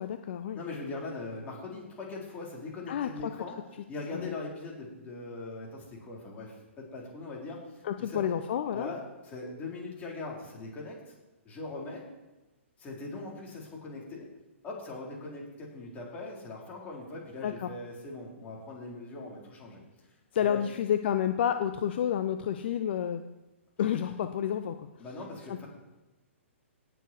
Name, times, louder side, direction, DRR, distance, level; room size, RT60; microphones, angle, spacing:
voice 1, 0.0-0.6 2.9-3.3 4.1-4.3 7.8-8.9 17.4-17.7 20.3-23.2 23.8-24.9 25.5-25.6, left 9 dB, 50° left, 9 dB, 0.7 m, -30 dB
voice 2, 0.5-3.6 3.9-8.2 8.7-11.0 11.4-12.0 12.8-14.3 14.6-19.8 20.4-20.6 25.0-25.7, left 3 dB, 20° left, -3 dB, 4.1 m, -41 dB
18.0 x 7.1 x 4.7 m, 1.1 s
figure-of-eight pair, 120°, 7 cm